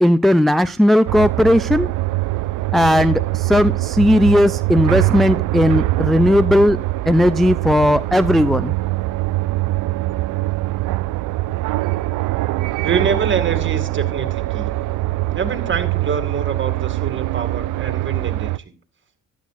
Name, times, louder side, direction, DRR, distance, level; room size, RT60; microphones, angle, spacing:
voice 1, 0.0-1.9 2.7-6.8 7.1-8.7, left 1 dB, ahead, 0.4 m, -16 dB
sound 1, 1.1-18.6, right 19 dB, 80° right, 0.5 m, -23 dB
voice 2, 12.8-14.7 15.3-18.7, right 6 dB, 40° right, 2.2 m, -25 dB
14.5 x 11.5 x 2.5 m
cardioid pair, 90°, 30 cm